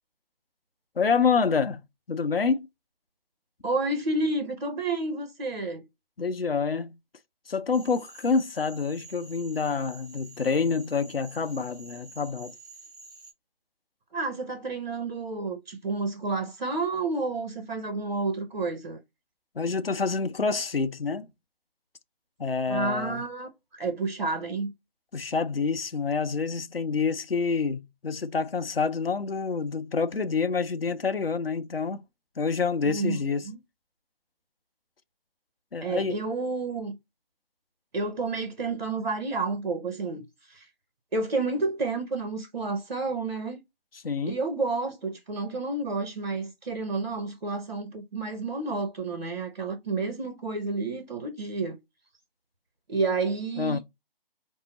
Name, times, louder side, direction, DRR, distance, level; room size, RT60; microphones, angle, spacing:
voice 1, 1.0-1.8 2.1-2.7 6.2-7.0 7.5-12.5 19.6-21.3 22.4-23.2 25.1-32.0 32.4-33.5 35.7-36.2 44.0-44.4 53.6-53.8, left 5 dB, 75° left, 0.7 m, -27 dB
voice 2, 3.6-5.8 14.1-19.0 22.7-24.7 32.8-33.6 35.8-37.0 37.9-40.7 41.1-43.6 44.3-51.8 52.9-53.8, right 3 dB, 50° right, 0.8 m, -30 dB
Cricket / Frog, 7.7-13.3, right 3 dB, 20° right, 1.0 m, -49 dB
5.3 x 2.0 x 3.9 m
figure-of-eight pair, 155°, 29 cm